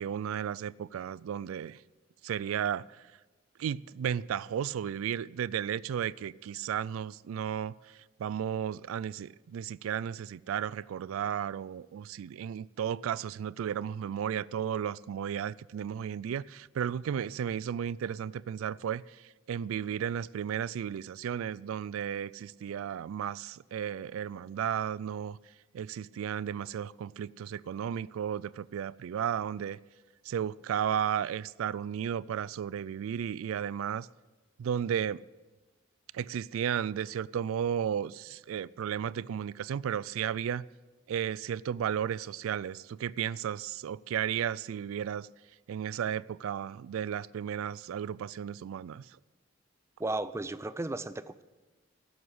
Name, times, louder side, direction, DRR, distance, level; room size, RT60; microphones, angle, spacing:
voice 1, 0.0-1.8 2.2-3.1 3.6-25.4 25.7-29.8 30.3-34.1 34.6-35.2 36.1-40.6 41.1-45.3 45.7-49.1, right 8 dB, 90° right, 0.3 m, -34 dB
voice 2, 50.0-51.4, right 2 dB, 15° right, 0.4 m, -34 dB
13.0 x 8.0 x 8.0 m
head